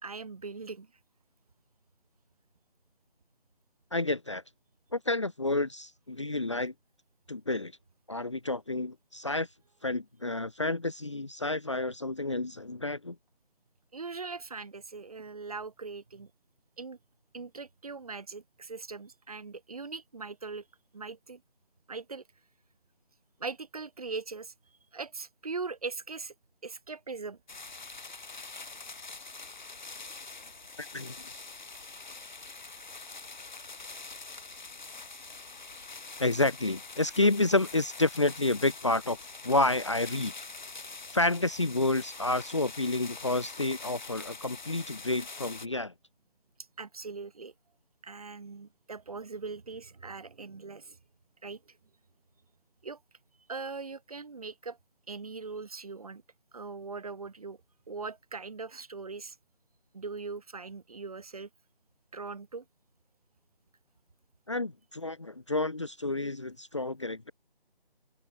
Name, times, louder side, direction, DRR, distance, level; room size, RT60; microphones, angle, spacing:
voice 1, 0.0-0.9 13.9-16.3 16.8-17.0 17.3-20.6 20.9-21.4 21.9-22.2 23.4-24.5 24.9-26.3 26.6-27.4 46.8-47.5 48.0-51.0 51.4-51.8 52.8-53.0 53.5-54.8 55.1-56.2 56.5-57.6 57.9-59.3 59.9-61.5 62.1-62.6, right 4 dB, 40° right, 3.1 m, -40 dB
voice 2, 3.9-4.4 4.9-6.7 7.3-7.7 8.1-9.5 9.8-13.2 30.8-31.1 36.2-40.3 41.1-45.9 64.5-67.3, left 2 dB, 30° left, 0.9 m, -29 dB
sound 1, 27.5-45.7, left 3 dB, 50° left, 6.3 m, -44 dB
figure-of-eight pair, 175°, 30 cm